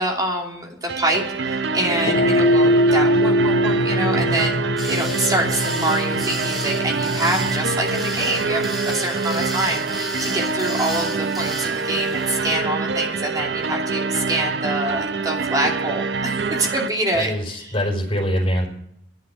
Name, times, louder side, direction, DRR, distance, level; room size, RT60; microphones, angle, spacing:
voice 1, 0.0-17.8, right 1 dB, 20° right, 0 dB, 2.7 m, -26 dB
sound 1, 0.9-16.9, right 4 dB, 65° right, 0.6 m, -25 dB
sound 2, 2.0-10.5, equal, 45° left, 0.6 m, -23 dB
sound 3, 4.8-12.6, left 1 dB, ahead, 2.1 m, -34 dB
voice 2, 17.1-18.7, equal, 30° left, -1 dB, 5.0 m, -23 dB
11.5 x 8.3 x 8.4 m, 0.69 s
head